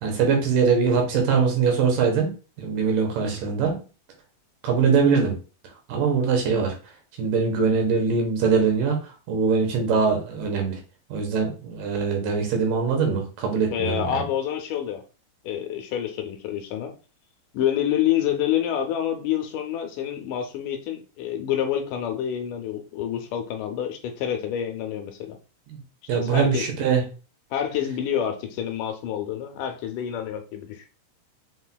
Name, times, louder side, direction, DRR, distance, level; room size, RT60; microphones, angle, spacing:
voice 1, 0.0-2.3 2.6-3.8 4.6-5.4 5.9-6.8 7.2-10.8 11.1-14.2 25.7-25.8 26.1-27.0, right 5 dB, 75° right, 2 dB, 2.6 m, -22 dB
voice 2, 13.7-15.0 15.4-16.9 17.5-25.4 26.1-26.6 27.5-30.9, left 10 dB, 80° left, 5 dB, 2.0 m, -27 dB
5.4 x 4.2 x 2.2 m, 0.34 s
omnidirectional pair, 4.0 m